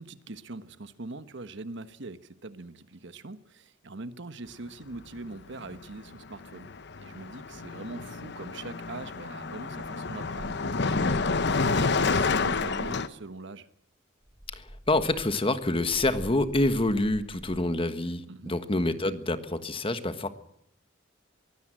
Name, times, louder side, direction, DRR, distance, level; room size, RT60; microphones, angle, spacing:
voice 1, 0.0-6.7 7.0-13.7 18.3-18.5, right 2 dB, 65° right, 12 dB, 1.2 m, -42 dB
Car passing by, 5.6-5.8 6.1-13.1, left 4 dB, 60° left, 1.0 m, -29 dB
sound 1, 10.2-13.0 14.2-17.7, equal, 15° right, 1.8 m, -45 dB
voice 2, 14.5-20.3, left 2 dB, 30° left, 11 dB, 1.4 m, -27 dB
22.5 x 16.5 x 7.7 m, 0.74 s
head